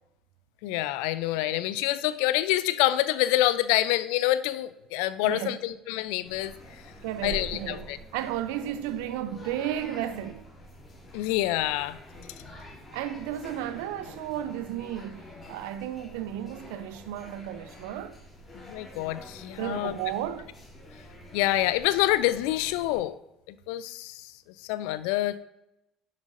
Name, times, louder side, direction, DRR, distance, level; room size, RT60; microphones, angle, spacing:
voice 1, 0.6-6.5 7.2-8.0 11.1-12.0 18.7-19.9 21.3-23.1 23.7-24.2 24.7-25.4, left 15 dB, 65° left, 0.4 m, -26 dB
voice 2, 5.2-5.6 7.0-7.9 8.1-10.4 12.9-18.2 19.6-20.5, right 11 dB, 70° right, 0.6 m, -33 dB
sound 1, 6.2-23.0, equal, 25° left, 3.4 m, -46 dB
11.0 x 7.3 x 2.6 m
figure-of-eight pair, 60°, 0 cm